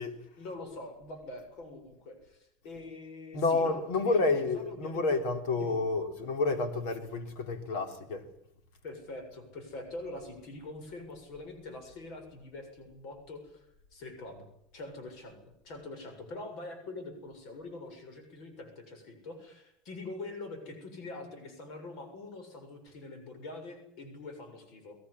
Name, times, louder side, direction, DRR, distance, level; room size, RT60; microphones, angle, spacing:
voice 1, 0.4-5.2 5.6-5.9 8.8-13.7 13.9-14.5 14.7-15.4 15.6-25.0, left 2 dB, 65° left, 7.1 m, -44 dB
voice 2, 3.3-8.3, left 3 dB, 85° left, 3.8 m, -29 dB
21.5 x 19.0 x 10.0 m
cardioid pair, 130°, 0 cm